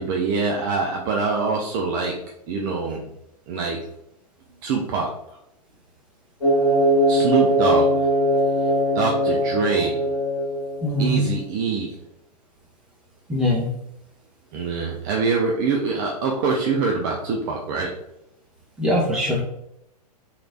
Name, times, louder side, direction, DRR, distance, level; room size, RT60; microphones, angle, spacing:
voice 1, 0.0-2.2 2.5-3.1 3.5-3.8 4.6-5.1 7.1-7.9 8.9-10.1 11.0-11.9 14.5-17.9, right 4 dB, 30° right, 0 dB, 0.4 m, -24 dB
sound 1, 6.4-11.1, equal, 70° left, 1.4 m, -20 dB
voice 2, 10.8-11.2 13.3-13.7 18.8-19.4, equal, 5° right, -5 dB, 0.8 m, -21 dB
3.1 x 2.9 x 2.6 m, 0.81 s
figure-of-eight pair, 110°, 21 cm